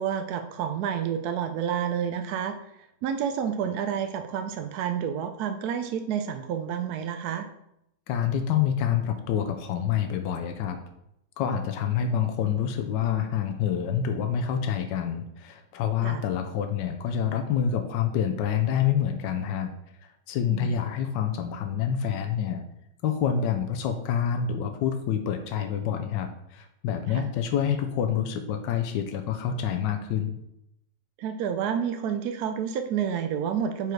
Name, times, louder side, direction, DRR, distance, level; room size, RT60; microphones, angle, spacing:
voice 1, 0.0-2.5 3.0-7.5 16.0-16.2 20.5-20.7 27.1-27.2 31.2-33.9, right 8 dB, 70° right, 8 dB, 1.0 m, -29 dB
voice 2, 8.1-10.8 11.4-19.7 20.0-22.6 23.0-30.4, left 8 dB, 90° left, 6 dB, 1.3 m, -27 dB
5.2 x 4.7 x 4.6 m, 0.81 s
omnidirectional pair, 1.9 m